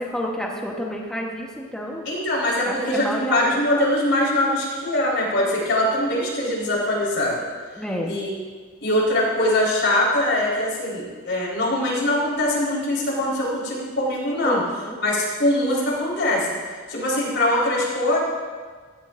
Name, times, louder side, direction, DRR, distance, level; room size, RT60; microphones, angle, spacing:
voice 1, 0.0-2.0 2.6-3.6 7.8-8.1 14.4-15.0, left 1 dB, 5° left, -2 dB, 1.1 m, -29 dB
voice 2, 2.0-7.4 8.0-8.4 8.8-14.6 15.0-16.5 16.9-18.2, left 1 dB, 60° left, -4 dB, 4.3 m, -22 dB
16.5 x 15.0 x 2.6 m, 1.5 s
head